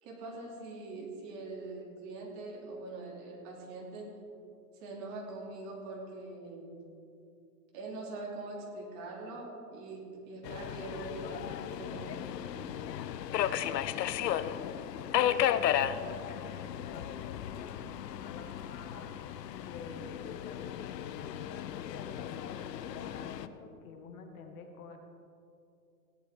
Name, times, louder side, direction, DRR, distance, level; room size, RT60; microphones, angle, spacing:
voice 1, 0.0-4.2 4.8-6.8 7.7-12.7, right 2 dB, 35° right, -2 dB, 3.0 m, -43 dB
Subway metro underground, 10.4-23.5, left 10 dB, 75° left, 0.7 m, -35 dB
voice 2, 15.1-19.2 19.5-25.0, left 4 dB, 60° left, 5 dB, 1.7 m, -49 dB
17.0 x 11.0 x 3.7 m, 2.6 s
hypercardioid pair, 145°, 49 cm